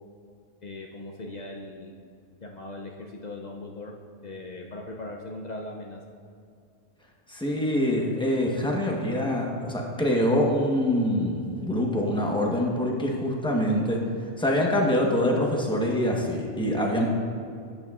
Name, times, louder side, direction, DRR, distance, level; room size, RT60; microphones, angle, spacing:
voice 1, 0.6-1.9 2.4-3.9 4.2-6.0, left 2 dB, 75° left, 0 dB, 0.4 m, -39 dB
voice 2, 7.3-14.0 14.4-17.1, left 1 dB, 5° left, -1 dB, 0.8 m, -25 dB
12.5 x 8.8 x 2.4 m, 2.4 s
omnidirectional pair, 1.5 m